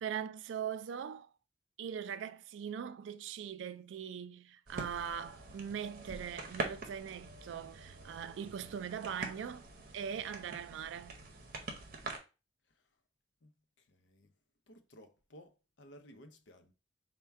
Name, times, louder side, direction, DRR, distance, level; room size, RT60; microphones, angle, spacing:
voice 1, 0.0-1.3 1.8-9.7 9.9-11.2, right 8 dB, 80° right, 0.3 m, -41 dB
sound 1, 4.7-12.2, right 3 dB, 50° right, 0.7 m, -45 dB
voice 2, 12.6-13.0 13.4-13.5 13.8-14.3 14.7-16.7, equal, 75° left, 0.6 m, -58 dB
4.3 x 2.2 x 3.4 m
head